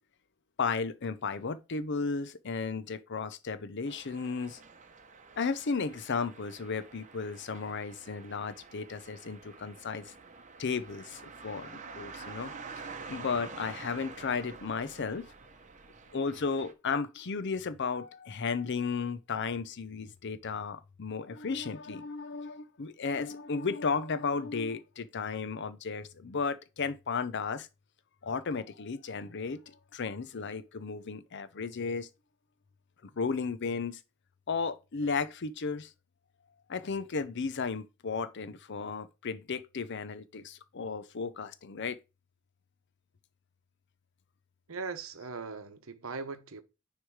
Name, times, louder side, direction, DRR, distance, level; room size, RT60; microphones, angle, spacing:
voice 1, 0.6-4.6 5.4-10.1 10.6-15.3 16.1-27.7 28.2-32.1 33.0-34.0 34.5-35.9 36.7-42.0, left 5 dB, 55° left, 0.6 m, -34 dB
sound 1, 3.9-16.7, right 4 dB, 35° right, 0.8 m, -48 dB
voice 2, 44.7-46.6, right 4 dB, 75° right, 0.9 m, -39 dB
9.8 x 3.3 x 4.7 m
head